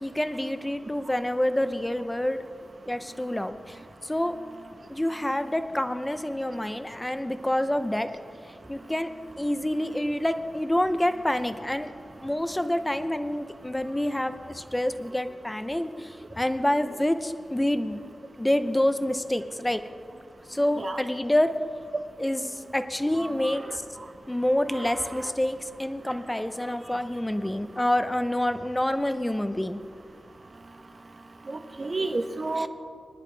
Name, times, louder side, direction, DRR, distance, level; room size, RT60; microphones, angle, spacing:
voice 1, 0.0-2.4 2.9-4.4 4.9-8.1 8.7-9.1 9.4-11.9 12.2-18.0 18.4-19.8 20.5-21.6 22.2-23.8 24.3-29.8 32.6-32.7, left 1 dB, 10° left, 9 dB, 0.7 m, -27 dB
voice 2, 23.2-23.6 24.7-25.3 31.5-32.7, right 2 dB, 40° right, 7 dB, 1.0 m, -32 dB
24.0 x 10.5 x 3.4 m, 2.3 s
wide cardioid pair, 95°, 0 cm